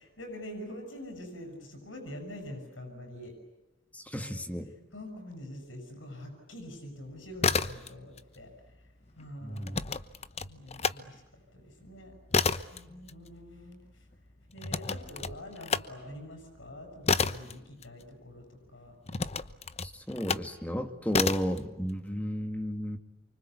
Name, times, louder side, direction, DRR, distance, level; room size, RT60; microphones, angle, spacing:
voice 1, 0.0-3.3 4.2-4.4 4.9-9.8 10.4-12.2 12.7-14.1 14.5-18.9, left 1 dB, 80° left, 5 dB, 7.9 m, -45 dB
voice 2, 3.9-4.7 9.4-9.8 12.9-13.1 19.8-23.0, equal, 10° left, 7 dB, 2.2 m, -33 dB
sound 1, 7.2-8.2 8.5-11.0 11.4-18.4 19.1-20.5 21.1-21.6, left 4 dB, 35° left, 1.0 m, -31 dB
29.0 x 25.0 x 8.3 m, 1.0 s
head